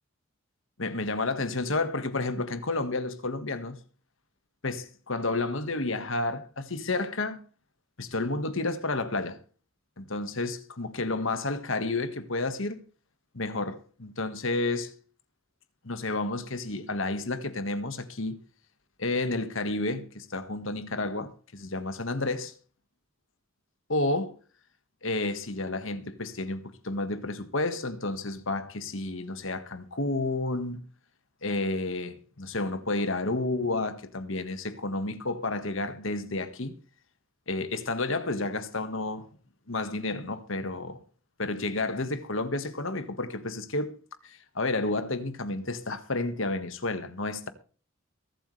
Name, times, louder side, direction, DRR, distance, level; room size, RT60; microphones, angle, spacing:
voice 1, 0.8-3.8 4.6-7.4 8.0-9.4 10.0-12.8 13.3-14.9 15.8-18.4 19.0-22.5 23.9-24.3 25.0-30.9 31.4-36.8 37.5-39.3 39.7-41.0 41.4-44.0 44.2-47.5, left 2 dB, 65° left, 1.6 m, -31 dB
23.0 x 8.3 x 3.3 m
head